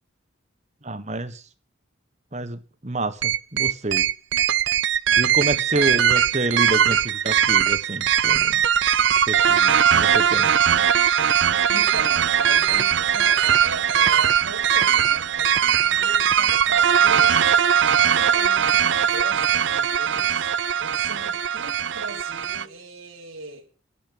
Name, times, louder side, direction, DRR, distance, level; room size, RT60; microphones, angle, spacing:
voice 1, 0.8-1.4 2.3-4.0 5.2-8.6 9.3-10.6, right 2 dB, 35° right, 1.4 m, -28 dB
sound 1, 3.2-22.6, right 9 dB, 65° right, 0.6 m, -20 dB
voice 2, 5.7-6.1 11.7-23.7, right 3 dB, 85° right, 3.7 m, -38 dB
11.5 x 11.0 x 8.6 m
head